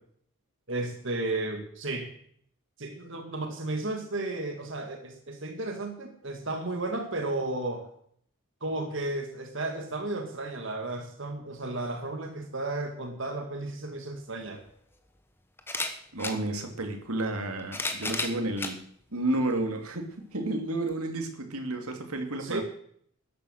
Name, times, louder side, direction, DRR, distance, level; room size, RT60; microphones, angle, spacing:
voice 1, 0.7-2.1 2.8-7.9 8.6-14.6 22.4-22.6, right 2 dB, 55° right, 4 dB, 1.9 m, -33 dB
sound 1, 14.2-14.3 15.6-16.4 17.4-18.8 19.5-19.6 20.9-21.0, left 2 dB, 10° left, 1.1 m, -33 dB
voice 2, 16.1-18.8 19.1-22.6, right 2 dB, 85° right, 4 dB, 2.7 m, -31 dB
13.0 x 11.0 x 6.6 m, 0.65 s
head